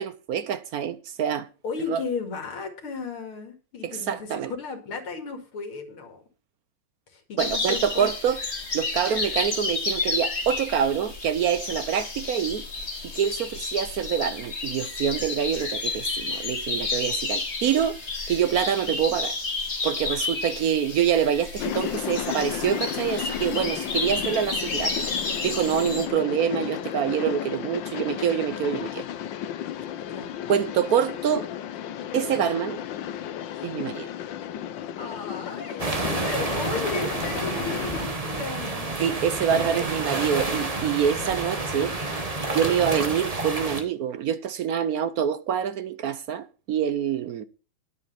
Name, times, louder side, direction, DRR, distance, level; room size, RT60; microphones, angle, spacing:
voice 1, 0.0-1.5 1.9-2.0 3.8-4.5 7.4-8.4 8.7-12.7 13.0-18.0 18.3-19.4 19.8-25.1 25.4-29.0 30.5-31.5 32.1-32.8 33.6-34.1 39.0-41.9 42.5-47.4, right 8 dB, 70° right, 0.9 m, -26 dB
voice 2, 1.6-6.2 7.1-8.1 30.1-30.4 35.0-39.0 39.5-39.9, left 4 dB, 85° left, 3.2 m, -35 dB
sound 1, 7.4-26.1, left 3 dB, 30° left, 2.2 m, -31 dB
sound 2, 21.6-38.1, left 10 dB, 65° left, 1.4 m, -33 dB
sound 3, 35.8-43.8, right 2 dB, 20° right, 1.3 m, -29 dB
10.0 x 8.2 x 5.7 m
omnidirectional pair, 2.3 m